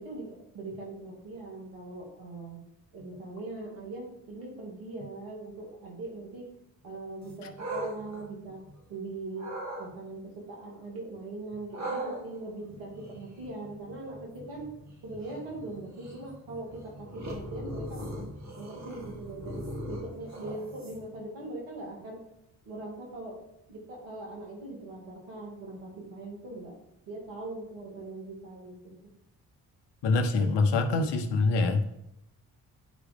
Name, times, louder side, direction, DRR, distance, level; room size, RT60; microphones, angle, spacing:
voice 1, 0.0-2.6 2.9-6.4 6.8-8.6 8.9-14.7 15.0-22.2 22.7-23.4 23.7-26.7 27.1-29.1, right 2 dB, 80° right, -2 dB, 2.2 m, -41 dB
sound 1, 7.2-8.9 9.4-9.9 11.7-21.2, right 1 dB, 40° right, 2.3 m, -40 dB
voice 2, 30.0-31.8, left 3 dB, 65° left, 7 dB, 1.1 m, -25 dB
9.6 x 4.8 x 3.6 m, 0.81 s
hypercardioid pair, 40°, 45 cm